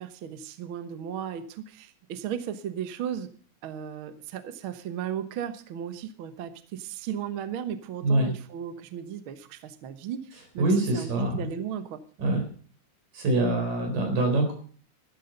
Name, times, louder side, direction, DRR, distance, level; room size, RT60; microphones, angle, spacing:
voice 1, 0.0-3.3 3.6-10.2 10.5-12.0, right 9 dB, 60° right, 11 dB, 1.4 m, -35 dB
voice 2, 10.6-11.5 12.2-12.4 13.1-14.5, right 2 dB, 80° right, 4 dB, 5.7 m, -24 dB
13.0 x 12.5 x 5.3 m, 0.43 s
omnidirectional pair, 3.7 m